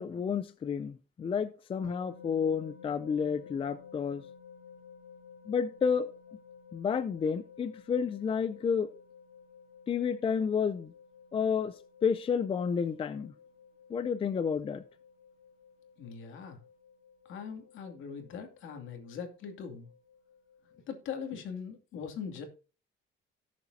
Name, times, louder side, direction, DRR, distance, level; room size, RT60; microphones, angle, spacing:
voice 1, 0.0-4.2 5.5-6.1 6.7-8.9 9.9-10.9 11.3-11.7 12.0-13.3 13.9-14.8, left 6 dB, 25° left, 0.5 m, -30 dB
sound 1, 1.8-21.2, left 7 dB, 45° left, 7.2 m, -54 dB
voice 2, 16.0-16.6 17.3-19.9 20.9-22.4, left 6 dB, 70° left, 2.6 m, -41 dB
17.5 x 7.2 x 2.8 m
cardioid pair, 160°, 21 cm